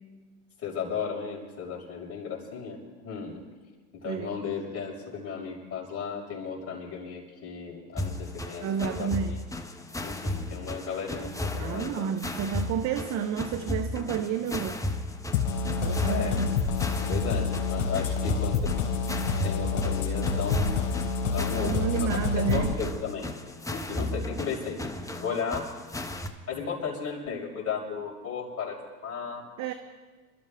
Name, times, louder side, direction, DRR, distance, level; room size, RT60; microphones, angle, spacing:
voice 1, 0.6-2.8 3.0-3.4 4.0-9.2 10.0-12.1 16.1-16.4 17.1-18.7 19.4-20.7 21.3-21.7 22.0-22.1 22.5-24.9 25.2-25.7 26.5-29.5, left 6 dB, 30° left, -3 dB, 6.2 m, -35 dB
sound 1, 7.9-26.3, left 1 dB, 5° left, 1.1 m, -35 dB
voice 2, 8.6-9.4 11.6-14.8 15.7-16.6 21.6-22.7 29.6-29.7, right 8 dB, 35° right, 9 dB, 1.0 m, -30 dB
sound 2, 15.3-22.7, left 5 dB, 60° left, 4.4 m, -28 dB
28.0 x 13.5 x 3.7 m, 1.4 s
hypercardioid pair, 105°, 46 cm